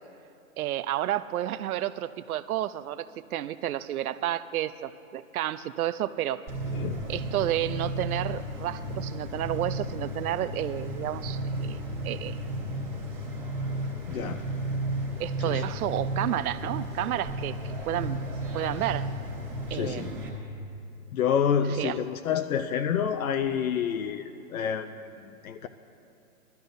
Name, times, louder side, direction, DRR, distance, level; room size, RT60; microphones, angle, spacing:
voice 1, 0.6-6.4 7.1-12.4 15.2-17.6 17.9-18.2 18.5-19.1 19.7-20.2 21.8-22.0, right 13 dB, 80° right, 14 dB, 0.5 m, -31 dB
sound 1, 6.5-20.3, right 1 dB, 5° right, 1.4 m, -33 dB
voice 2, 14.1-14.4 15.4-15.6 19.7-20.1 21.1-25.7, left 8 dB, 75° left, 8 dB, 0.6 m, -28 dB
19.5 x 13.0 x 2.6 m, 2.8 s
hypercardioid pair, 165°, 43 cm